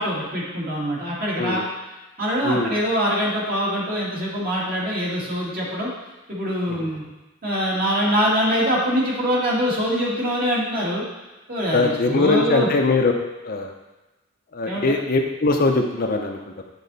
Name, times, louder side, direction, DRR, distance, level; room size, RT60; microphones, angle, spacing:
voice 1, 0.0-1.6 2.2-5.9 6.3-7.0 7.4-11.1 11.5-12.7 14.6-14.9, equal, 50° right, -5 dB, 2.1 m, -23 dB
voice 2, 1.4-1.7 2.4-2.7 6.7-6.9 11.7-13.1 13.4-13.7 14.5-16.6, left 3 dB, 50° left, 3 dB, 0.6 m, -21 dB
8.5 x 4.1 x 4.1 m, 1.1 s
head